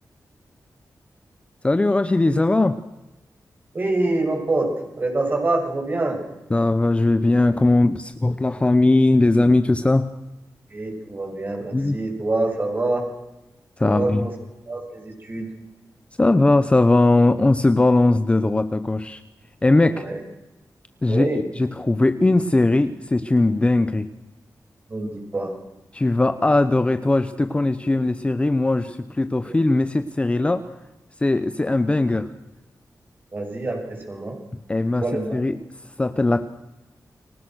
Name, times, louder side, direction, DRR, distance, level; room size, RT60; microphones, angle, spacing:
voice 1, 1.6-2.8 6.5-10.1 11.7-12.0 13.8-14.2 16.2-19.2 19.6-20.0 21.0-24.1 25.9-30.6 31.2-32.3 34.7-35.0 35.3-35.6 36.0-36.4, left 2 dB, 15° left, 11 dB, 0.9 m, -19 dB
voice 2, 3.7-4.7 5.0-6.2 10.7-13.0 13.8-14.3 14.7-15.5 19.9-20.2 21.1-21.4 24.9-25.5 29.4-29.6 33.3-34.3 35.0-35.4, right 2 dB, 30° right, 2 dB, 7.8 m, -25 dB
30.0 x 24.0 x 6.4 m, 0.98 s
wide cardioid pair, 180°, 7 cm